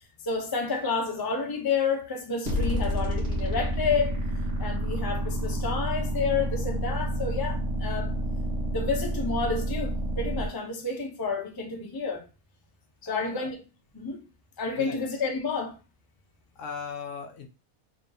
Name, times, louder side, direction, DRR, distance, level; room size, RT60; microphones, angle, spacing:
voice 1, 0.2-4.2 4.6-8.1 8.7-12.3 13.0-13.6 13.9-14.2 14.6-15.8, left 4 dB, 25° left, 0.4 m, -30 dB
sound 1, 2.4-10.5, equal, 45° right, 1.4 m, -29 dB
voice 2, 13.1-13.5 14.8-15.0 16.6-17.5, left 5 dB, 65° left, 0.9 m, -38 dB
3.2 x 2.8 x 3.8 m
omnidirectional pair, 1.6 m